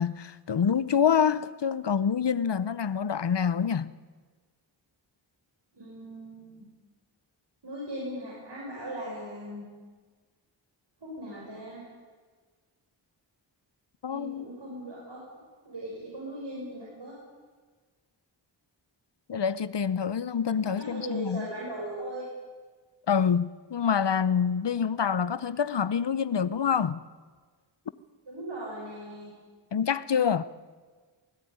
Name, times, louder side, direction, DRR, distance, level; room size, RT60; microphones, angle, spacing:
voice 1, 0.0-3.9 14.0-14.5 19.3-21.5 23.1-27.0 29.7-30.4, left 7 dB, 65° left, 0.8 m, -26 dB
voice 2, 5.7-6.7 7.6-9.7 11.0-11.8 14.1-15.2 15.6-17.1 20.8-22.3 28.3-29.3, right 1 dB, 65° right, 6.4 m, -38 dB
19.0 x 18.0 x 9.5 m
wide cardioid pair, 65°, 46 cm